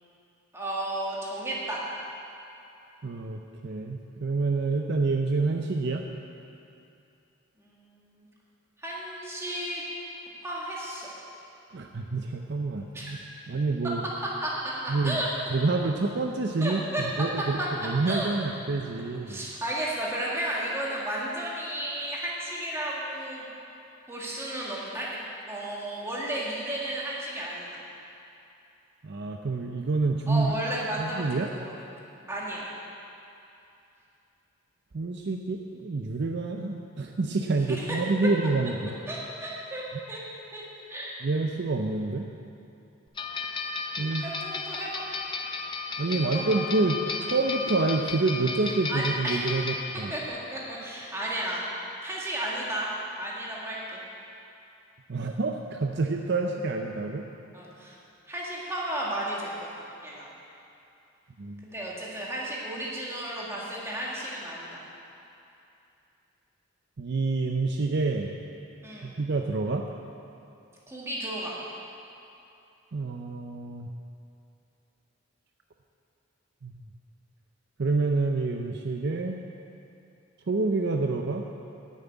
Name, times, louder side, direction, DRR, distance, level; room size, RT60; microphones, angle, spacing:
voice 1, 0.5-1.8 7.6-8.3 8.8-9.8 10.4-11.1 12.9-13.1 14.4-15.3 16.6-17.0 18.1-18.3 19.3-23.5 24.1-25.1 25.5-27.8 30.3-31.9 32.3-32.7 37.7-38.0 39.1-39.8 40.1-40.2 40.5-40.6 40.9-41.1 44.2-45.1 46.1-46.6 48.9-49.5 50.1-51.6 52.0-52.9 53.2-54.0 57.5-58.0 58.3-60.3 61.6-64.9 68.8-69.2 70.9-71.6, right 1 dB, 10° right, -5 dB, 1.8 m, -33 dB
voice 2, 3.0-6.1 11.7-13.2 13.5-14.0 14.9-15.2 15.5-16.8 17.2-19.4 29.0-30.5 31.0-31.5 34.9-38.9 41.2-42.3 44.0-44.3 46.0-47.0 47.2-50.1 55.1-57.3 61.4-61.6 67.0-68.3 69.0-69.9 72.9-73.9 76.6-76.8 77.8-79.4 80.5-81.4, right 3 dB, 50° right, 3 dB, 0.5 m, -27 dB
sound 1, 43.2-50.3, left 4 dB, 20° left, 0.6 m, -34 dB
9.6 x 7.3 x 9.2 m, 2.7 s
head